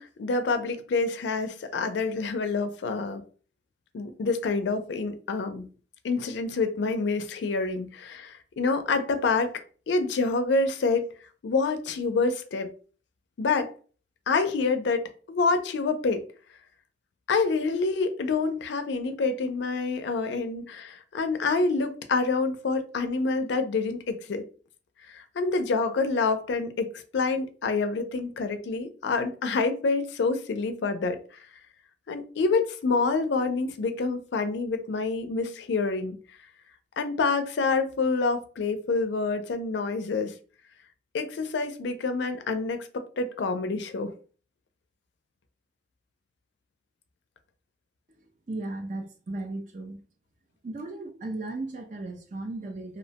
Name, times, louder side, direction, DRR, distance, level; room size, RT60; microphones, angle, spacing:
voice 1, 0.0-3.2 3.9-5.7 6.0-9.6 9.9-11.1 11.4-12.7 13.4-13.7 14.3-16.2 17.3-24.4 25.1-31.2 32.1-36.2 37.0-40.3 41.1-44.1, left 4 dB, 75° left, 0.4 m, -27 dB
voice 2, 48.1-50.0 50.6-53.0, right 2 dB, 40° right, 0.4 m, -36 dB
2.7 x 2.1 x 2.7 m
head